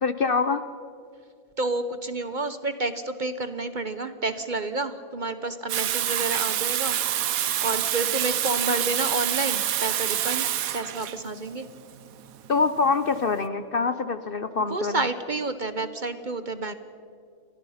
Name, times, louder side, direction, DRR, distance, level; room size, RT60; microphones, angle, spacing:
voice 1, 0.0-0.6 12.5-15.1, left 4 dB, 50° left, 11 dB, 0.9 m, -25 dB
voice 2, 1.6-7.0 7.6-11.7 14.6-16.7, right 2 dB, 40° right, 11 dB, 0.9 m, -30 dB
Water tap faucet / Sink (filling or washing), 5.7-13.4, right 11 dB, 80° right, 1.2 m, -27 dB
29.5 x 22.5 x 5.7 m, 2.4 s
omnidirectional pair, 1.5 m